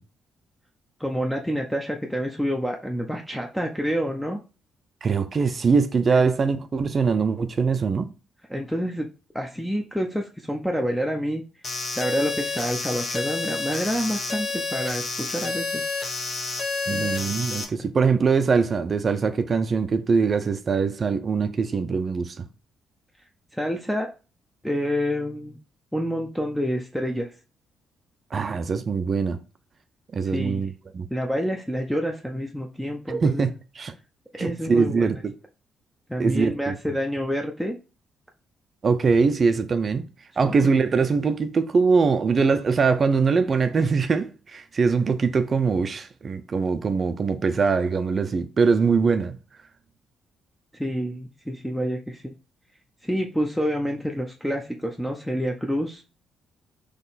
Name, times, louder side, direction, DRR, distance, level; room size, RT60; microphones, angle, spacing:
voice 1, 1.0-4.4 6.1-6.2 8.5-9.1 9.3-11.4 12.0-15.8 16.9-17.1 23.5-24.1 24.6-25.6 25.9-27.3 30.3-30.6 31.1-33.4 34.4-35.1 36.1-37.8 40.4-40.5 50.7-52.3 53.0-56.0, equal, ahead, 0.6 m, -28 dB
voice 2, 5.0-8.1 16.9-22.4 28.3-29.4 30.1-31.1 33.1-33.5 33.8-33.9 34.4-35.3 36.2-36.8 38.8-40.1 40.4-49.4, right 5 dB, 40° right, 0.4 m, -22 dB
sound 1, 11.6-17.6, left 3 dB, 45° left, 1.1 m, -29 dB
3.8 x 3.0 x 4.0 m
cardioid pair, 90°, 0 cm